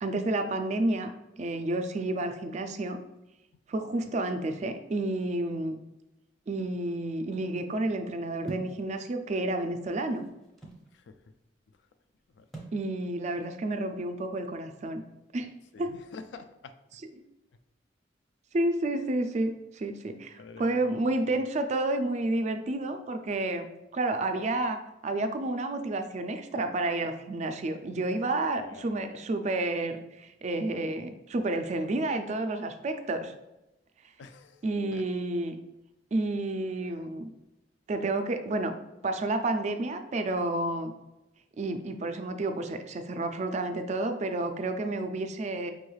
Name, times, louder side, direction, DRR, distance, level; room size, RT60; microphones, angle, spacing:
voice 1, 0.0-1.1 1.4-3.0 3.7-5.8 6.5-10.2 12.7-15.0 15.3-15.5 15.8-15.9 18.5-23.7 23.9-33.3 34.6-35.6 36.1-37.3 37.9-38.7 39.0-40.9 41.6-45.7, right 2 dB, 40° right, 8 dB, 0.3 m, -30 dB
sound 1, 8.5-8.8 9.7-10.9 12.5-12.8, right 2 dB, ahead, 0.7 m, -41 dB
voice 2, 15.7-16.7 20.4-21.0 21.3-21.4 28.6-29.2 34.2-34.6 34.9-35.0, left 4 dB, 75° left, 9 dB, 0.4 m, -47 dB
5.1 x 3.1 x 2.3 m, 0.95 s
head